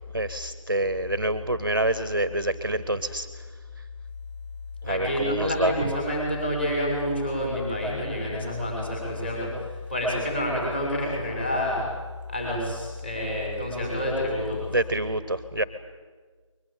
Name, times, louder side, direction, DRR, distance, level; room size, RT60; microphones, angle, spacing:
voice 1, 0.1-3.3 4.8-5.7 14.7-15.6, right 1 dB, 40° right, 13 dB, 1.0 m, -27 dB
voice 2, 4.8-11.9 12.3-14.8, left 1 dB, 20° left, -1 dB, 6.5 m, -28 dB
22.0 x 20.0 x 8.9 m, 1.5 s
figure-of-eight pair, 175°, 17 cm